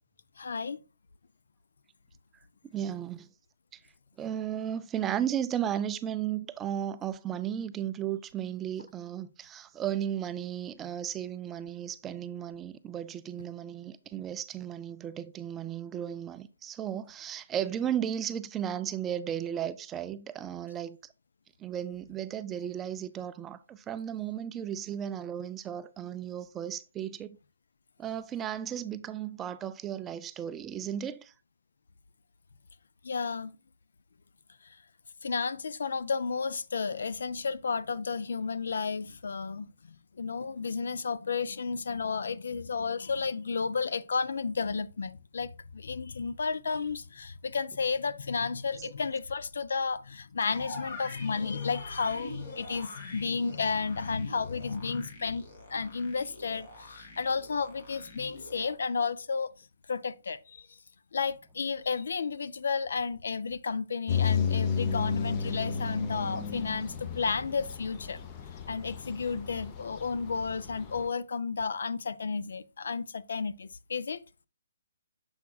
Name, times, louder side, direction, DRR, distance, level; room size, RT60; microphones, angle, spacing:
voice 1, 0.4-0.8 33.0-33.5 35.2-39.7 40.2-55.4 55.7-59.5 59.9-60.7 61.1-68.2 68.7-74.2, left 5 dB, 70° left, 0.4 m, -32 dB
voice 2, 2.7-3.3 4.2-21.0 21.6-27.4 28.0-31.3 48.8-48.9, right 10 dB, 15° right, 0.3 m, -35 dB
sound 1, 50.4-58.7, left 2 dB, 50° left, 2.4 m, -46 dB
sound 2, 64.1-71.1, left 6 dB, 30° left, 0.7 m, -33 dB
7.1 x 5.8 x 2.3 m
hypercardioid pair, 145°, 0 cm